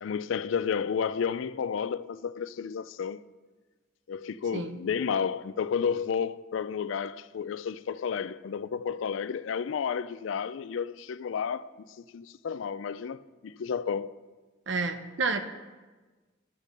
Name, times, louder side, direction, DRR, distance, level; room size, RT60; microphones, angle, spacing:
voice 1, 0.0-3.2 4.1-11.7 12.0-14.1, left 6 dB, 80° left, 0.4 m, -31 dB
voice 2, 14.7-15.4, right 4 dB, 70° right, 0.7 m, -29 dB
12.0 x 5.2 x 6.5 m
head